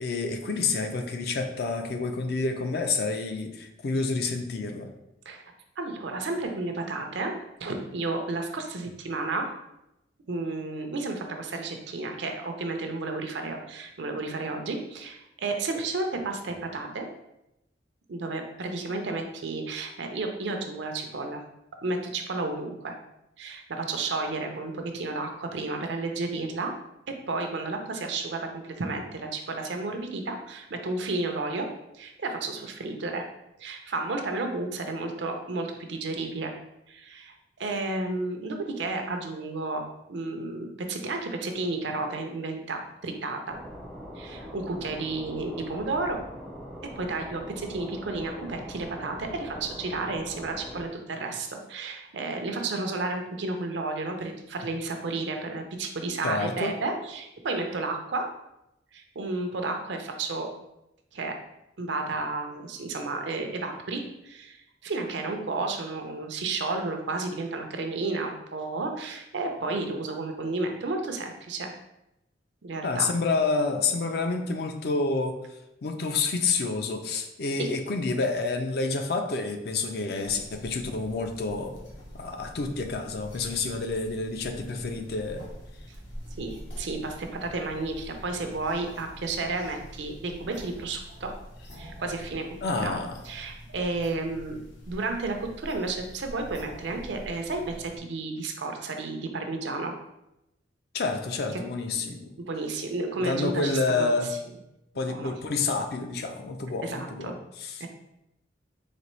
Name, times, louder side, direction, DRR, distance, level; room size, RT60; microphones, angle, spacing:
voice 1, 0.0-4.9 56.2-56.7 72.8-75.4 75.8-81.7 82.2-85.5 92.6-93.1 100.9-102.3 103.2-104.3 105.0-107.8, left 3 dB, 55° left, 5 dB, 0.4 m, -28 dB
voice 2, 5.8-7.3 7.6-9.5 10.3-17.1 18.1-21.4 21.8-22.9 23.4-26.8 27.1-31.7 31.9-33.2 33.6-36.5 36.9-37.3 37.6-39.8 40.1-43.6 44.2-46.2 47.0-58.3 58.9-60.5 61.1-61.3 61.8-71.7 72.6-73.1 86.4-91.3 91.7-92.5 92.7-92.9 93.2-94.6 94.9-99.9 102.0-104.4 105.0-105.3 106.8-107.4 107.8-107.9, right 3 dB, 75° right, 4 dB, 0.5 m, -32 dB
sound 1, 43.5-50.9, equal, ahead, 0.4 m, -42 dB
sound 2, 80.2-98.0, equal, 80° left, 1.0 m, -45 dB
4.1 x 2.9 x 3.1 m, 0.87 s
head